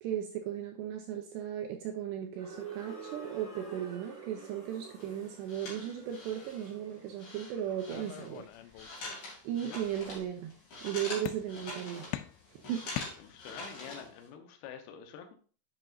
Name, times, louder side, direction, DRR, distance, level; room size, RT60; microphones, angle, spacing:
voice 1, 0.0-8.5 9.4-10.5 10.8-12.0 12.5-12.9, right 10 dB, 85° right, 4 dB, 2.5 m, -36 dB
sound 1, 2.4-8.3, right 6 dB, 30° left, 4.3 m, -48 dB
sound 2, 5.0-14.3, left 2 dB, 45° left, 3.7 m, -45 dB
sound 3, 7.9-9.2 9.6-10.3 11.3-11.8 12.1-13.7, left 14 dB, 90° left, 2.5 m, -43 dB
voice 2, 13.2-15.4, left 8 dB, 70° left, 5 dB, 2.6 m, -47 dB
8.0 x 7.7 x 2.6 m, 0.39 s
omnidirectional pair, 5.6 m